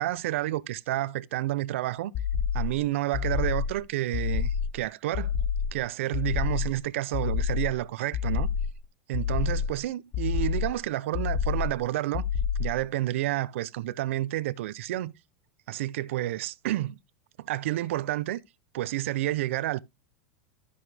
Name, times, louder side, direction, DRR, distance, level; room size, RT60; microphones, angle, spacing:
voice 1, 0.0-2.1 2.5-5.3 5.7-8.5 9.1-12.2 12.6-15.1 15.7-17.0 17.4-18.4 18.7-19.8, right 15 dB, 75° right, 0.6 m, -30 dB
sound 1, 2.1-2.8 3.1-3.8 4.1-4.8 5.1-5.8 6.1-6.8 7.1-7.8 8.1-8.8 9.1-9.8 10.1-10.8 11.1-11.8 12.1-12.8, left 7 dB, 35° left, 0.6 m, -28 dB
13.0 x 5.4 x 3.3 m
supercardioid pair, 170°, 7 cm